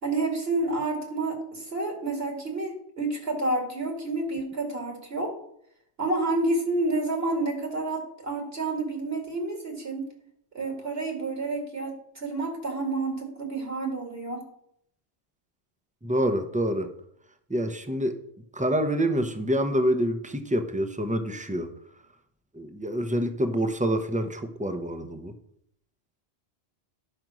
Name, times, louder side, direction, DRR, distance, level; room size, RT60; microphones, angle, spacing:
voice 1, 0.0-5.3 6.0-10.1 10.5-14.4, right 2 dB, 60° right, 2 dB, 2.3 m, -29 dB
voice 2, 16.0-16.9 17.5-18.2 18.5-21.7 22.5-25.3, equal, 10° right, 8 dB, 0.7 m, -27 dB
11.0 x 5.2 x 6.1 m, 0.72 s
omnidirectional pair, 1.1 m